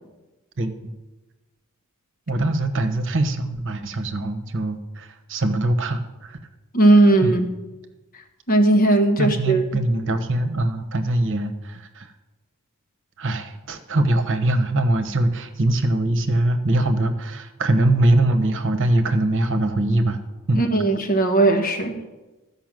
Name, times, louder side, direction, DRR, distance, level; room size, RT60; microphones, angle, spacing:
voice 1, 0.6-0.9 2.3-6.4 7.2-7.3 9.2-12.1 13.2-20.2 20.5-20.6, right 1 dB, 60° right, 7 dB, 1.1 m, -22 dB
voice 2, 6.7-7.5 8.5-9.6 20.5-22.0, right 2 dB, 40° left, 3 dB, 1.5 m, -17 dB
13.5 x 5.7 x 7.6 m, 1.1 s
head